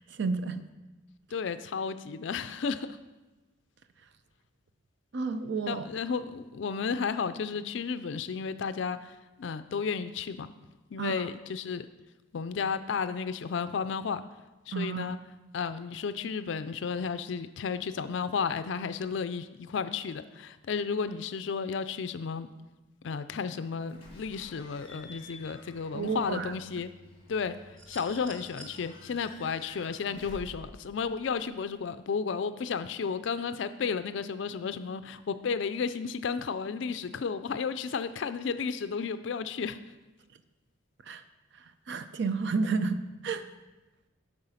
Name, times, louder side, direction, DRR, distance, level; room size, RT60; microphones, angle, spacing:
voice 1, 0.2-0.6 5.1-5.9 11.0-11.2 14.7-15.1 25.9-26.5 41.1-41.2 41.9-43.0 43.2-43.4, right 4 dB, 60° right, 11 dB, 0.5 m, -30 dB
voice 2, 1.3-3.0 5.7-10.5 10.9-11.9 12.3-14.2 14.7-15.2 15.5-22.5 23.0-26.9 27.3-27.6 27.9-39.8, left 5 dB, 65° left, 12 dB, 0.4 m, -33 dB
Slam / Squeak / Alarm, 23.9-31.9, left 1 dB, 25° left, 2.6 m, -51 dB
sound 1, 27.8-28.8 30.3-30.4, right 2 dB, 80° right, 1.9 m, -48 dB
8.8 x 6.2 x 5.7 m, 1.1 s
head